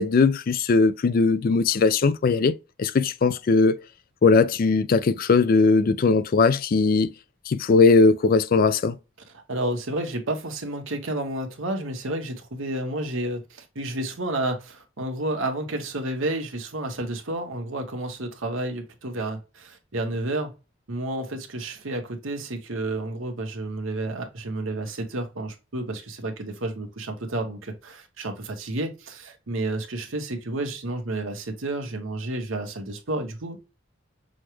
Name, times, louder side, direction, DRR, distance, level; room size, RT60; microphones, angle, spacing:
voice 1, 0.0-2.5 2.8-3.8 4.2-7.1 7.5-9.0, left 4 dB, 45° left, 0.4 m, -19 dB
voice 2, 9.5-20.5 20.9-33.6, right 2 dB, 80° right, 1.1 m, -31 dB
6.3 x 2.3 x 3.0 m
head